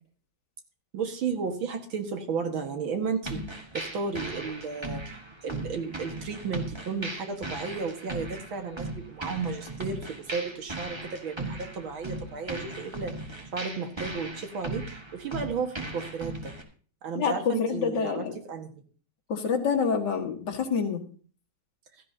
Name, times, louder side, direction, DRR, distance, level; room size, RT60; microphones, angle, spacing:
voice 1, 0.9-3.4 3.7-13.1 13.5-14.8 15.1-16.5 17.0-18.8, right 5 dB, 75° right, 5 dB, 2.5 m, -33 dB
sound 1, 3.2-16.6, right 2 dB, 15° right, 1.2 m, -38 dB
voice 2, 17.1-18.3 19.3-21.0, left 6 dB, 60° left, 1 dB, 2.3 m, -27 dB
16.0 x 13.0 x 2.8 m, 0.42 s
omnidirectional pair, 2.2 m